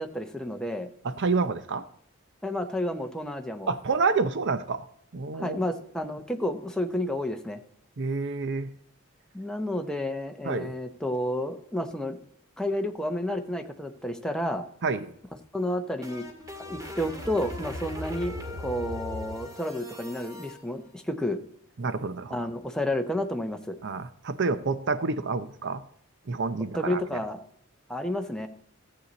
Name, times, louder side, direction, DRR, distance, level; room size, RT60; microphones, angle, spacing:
voice 1, 0.0-0.9 2.4-3.7 5.3-7.6 9.3-12.2 12.6-14.7 15.5-16.3 16.6-21.4 22.3-23.8 26.7-27.4 27.9-28.5, left 1 dB, 5° left, 5 dB, 0.8 m, -31 dB
voice 2, 1.0-1.8 3.7-4.9 5.1-5.6 8.0-8.7 10.4-10.7 14.8-15.1 21.8-22.5 23.8-25.8 26.3-27.0, right 4 dB, 60° right, 12 dB, 0.6 m, -28 dB
sound 1, 15.6-20.5, left 1 dB, 15° right, 2.0 m, -39 dB
14.0 x 8.1 x 4.1 m, 0.66 s
head